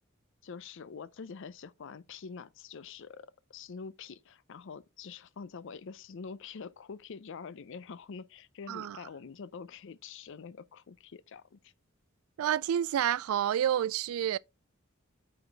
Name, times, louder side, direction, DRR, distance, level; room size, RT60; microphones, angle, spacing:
voice 1, 0.4-11.7, left 5 dB, 65° left, 0.5 m, -45 dB
voice 2, 8.7-9.0 12.4-14.4, right 10 dB, 85° right, 0.3 m, -29 dB
8.6 x 4.1 x 3.3 m
head